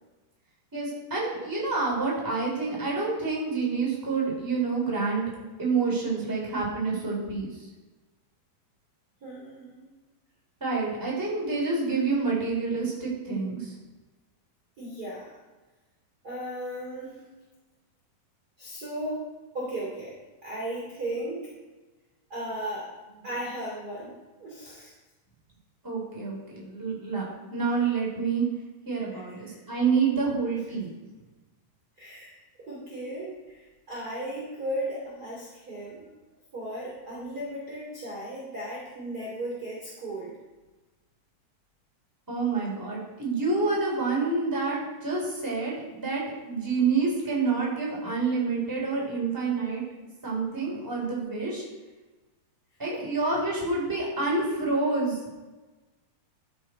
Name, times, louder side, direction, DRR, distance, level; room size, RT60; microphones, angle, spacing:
voice 1, 0.7-5.2 5.6-7.6 10.6-13.7 25.8-27.2 27.5-28.4 28.8-30.9 42.3-49.8 50.2-51.6 52.8-55.2, right 4 dB, 5° right, -4 dB, 3.1 m, -28 dB
voice 2, 9.2-9.9 14.8-15.4 16.2-17.3 18.6-19.2 19.5-20.1 20.4-21.5 22.3-22.9 23.2-24.1 24.4-24.9 29.1-29.6 32.0-32.3 32.7-36.1 36.5-40.4 52.9-53.0, right 1 dB, 25° right, -5 dB, 2.9 m, -36 dB
14.0 x 6.3 x 4.4 m, 1.2 s
omnidirectional pair, 4.3 m